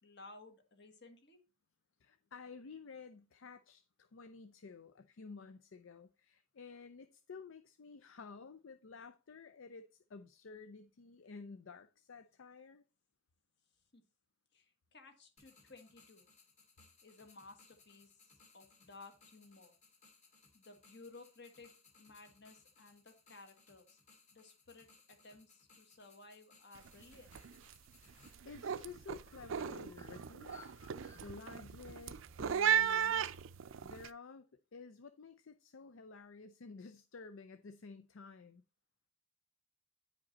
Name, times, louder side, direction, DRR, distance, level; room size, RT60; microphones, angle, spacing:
voice 1, 0.0-1.4 13.9-14.0 14.5-16.3 17.0-19.7 20.5-21.7 22.0-24.0 24.3-27.4, left 3 dB, 55° left, 1.5 m, -57 dB
voice 2, 2.0-12.8 28.0-30.6 31.1-33.3 33.8-34.5 34.7-38.6, left 4 dB, 70° left, 0.5 m, -52 dB
sound 1, 15.4-28.3, left 4 dB, 35° left, 2.0 m, -66 dB
sound 2, 26.8-27.0 27.3-27.7 28.1-34.1, right 8 dB, 70° right, 0.4 m, -36 dB
Bird, 28.0-33.2, left 4 dB, 15° left, 1.6 m, -63 dB
9.6 x 5.2 x 4.1 m
head